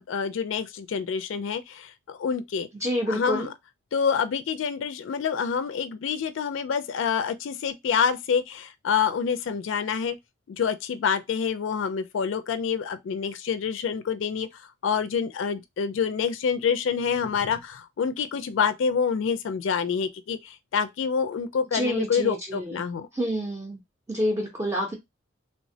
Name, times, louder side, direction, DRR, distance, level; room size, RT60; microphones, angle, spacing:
voice 1, 0.0-2.7 3.1-3.5 3.9-10.2 10.5-23.1, left 6 dB, 75° left, 0.3 m, -27 dB
voice 2, 2.8-3.5 21.7-22.8 23.1-23.8 24.1-24.9, equal, 15° right, 0.5 m, -28 dB
3.2 x 2.0 x 2.7 m
head